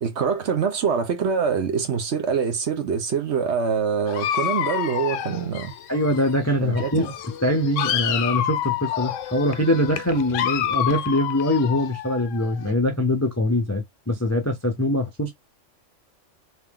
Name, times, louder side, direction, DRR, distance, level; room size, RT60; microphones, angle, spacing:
voice 1, 0.0-5.7 6.6-7.1, right 6 dB, 60° right, 1.2 m, -24 dB
Dog, 4.1-6.5 6.7-12.7, left 10 dB, 75° left, 0.9 m, -28 dB
voice 2, 5.9-15.3, left 1 dB, 20° left, 0.4 m, -23 dB
3.2 x 2.9 x 3.7 m
omnidirectional pair, 1.3 m